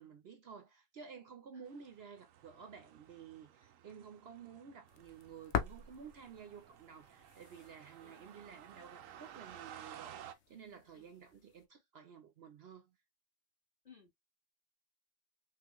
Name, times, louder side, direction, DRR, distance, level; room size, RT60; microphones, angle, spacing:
voice 1, 0.0-13.0, right 6 dB, 60° right, 0.8 m, -53 dB
voice 2, 1.5-1.6 7.0-7.1 8.0-8.2 10.9-11.1 13.8-14.1, left 6 dB, 40° left, 1.8 m, -61 dB
sound 1, 1.7-10.3, right 10 dB, 90° right, 1.0 m, -55 dB
sound 2, 4.9-11.7, left 8 dB, 65° left, 0.9 m, -45 dB
5.8 x 2.1 x 3.0 m
omnidirectional pair, 1.3 m